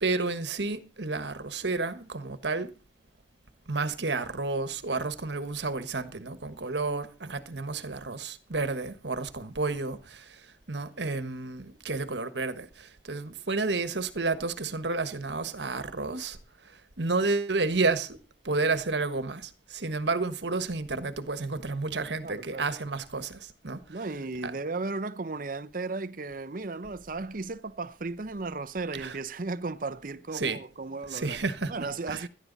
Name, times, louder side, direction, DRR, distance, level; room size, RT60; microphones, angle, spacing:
voice 1, 0.0-2.7 3.7-10.4 10.7-16.4 17.0-18.2 18.4-23.8 24.4-24.5 29.0-29.1 30.3-30.6 31.1-31.7 32.1-32.3, right 3 dB, 75° right, 1.4 m, -31 dB
voice 2, 22.2-22.7 23.9-31.4 31.7-32.3, right 3 dB, 50° right, 0.7 m, -35 dB
17.5 x 12.5 x 4.0 m
head